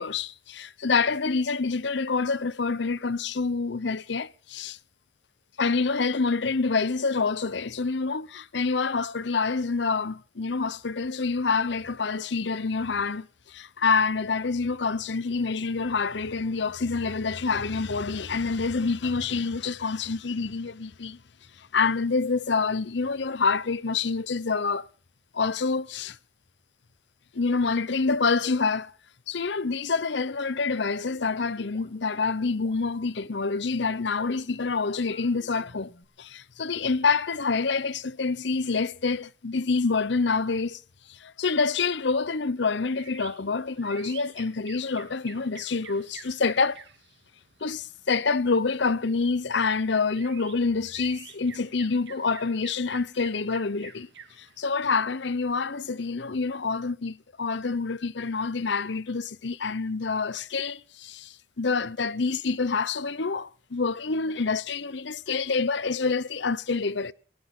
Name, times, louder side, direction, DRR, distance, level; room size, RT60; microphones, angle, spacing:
voice 1, 0.0-4.8 5.6-21.2 21.6-24.9 25.3-26.2 27.3-28.9 29.3-35.9 36.2-40.8 41.1-46.8 47.6-54.1 54.4-67.1, left 4 dB, 60° left, 0.8 m, -27 dB
sound 1, 30.8-36.0, left 2 dB, 40° left, 2.6 m, -51 dB
sound 2, 42.8-56.1, right 7 dB, 60° right, 2.4 m, -50 dB
21.0 x 18.0 x 3.8 m
head